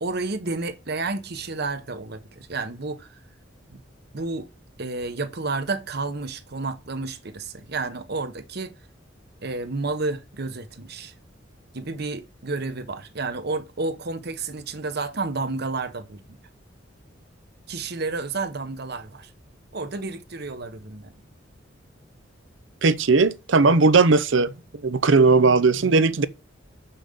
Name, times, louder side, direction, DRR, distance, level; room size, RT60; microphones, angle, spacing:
voice 1, 0.0-3.2 3.7-3.8 4.1-4.5 4.8-8.7 9.4-11.1 11.7-16.4 17.7-19.3 19.7-21.1, right 3 dB, 55° right, 1.0 m, -31 dB
voice 2, 22.8-24.5 24.8-26.3, right 4 dB, 75° right, 0.7 m, -18 dB
6.9 x 5.7 x 6.6 m
head